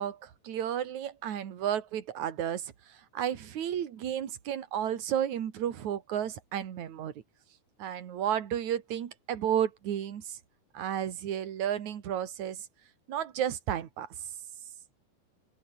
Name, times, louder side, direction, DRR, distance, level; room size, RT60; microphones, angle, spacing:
voice 1, 0.0-7.1 7.8-10.4 10.7-12.7 13.1-14.1, right 10 dB, 50° right, 2.8 m, -32 dB
open air
omnidirectional pair, 5.1 m